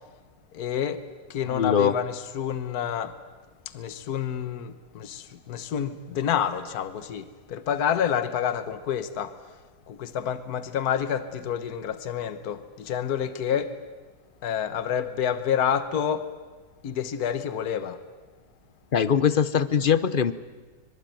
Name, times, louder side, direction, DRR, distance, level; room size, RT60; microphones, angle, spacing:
voice 1, 0.5-1.0 1.3-3.1 3.7-9.4 9.9-13.8 14.4-16.3 16.8-18.0, left 8 dB, 65° left, 12 dB, 1.6 m, -28 dB
voice 2, 1.5-1.9 18.9-20.3, left 7 dB, 40° left, 15 dB, 0.9 m, -22 dB
25.0 x 23.5 x 9.2 m, 1.3 s
omnidirectional pair, 1.8 m